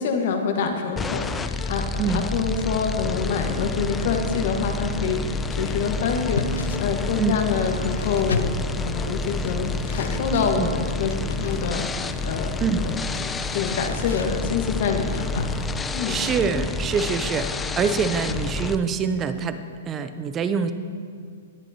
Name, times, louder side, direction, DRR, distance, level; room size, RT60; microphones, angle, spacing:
voice 1, 0.0-8.5 8.8-15.4 15.9-16.2, left 6 dB, 60° left, 4 dB, 1.6 m, -26 dB
sound 1, 1.0-18.8, left 3 dB, 15° left, 0.5 m, -29 dB
sound 2, 5.6-15.8, left 4 dB, 80° left, 0.6 m, -36 dB
voice 2, 16.1-20.7, right 6 dB, 25° right, 11 dB, 0.7 m, -25 dB
18.5 x 9.8 x 3.0 m, 2.3 s
hypercardioid pair, 120°, 0 cm